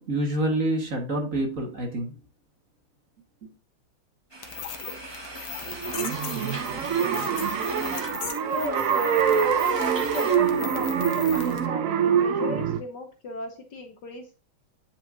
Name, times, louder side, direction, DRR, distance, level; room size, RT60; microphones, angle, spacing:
voice 1, 0.0-2.2 3.4-3.5, right 1 dB, 40° right, 1.7 m, -27 dB
sound 1, 4.3-10.4, right 1 dB, 15° right, 0.9 m, -41 dB
sound 2, 4.4-11.7, left 8 dB, 85° left, 1.9 m, -38 dB
sound 3, 5.7-12.8, right 8 dB, 90° right, 0.7 m, -25 dB
voice 2, 8.4-14.3, left 2 dB, 60° left, 1.3 m, -36 dB
9.0 x 5.5 x 2.6 m
omnidirectional pair, 2.4 m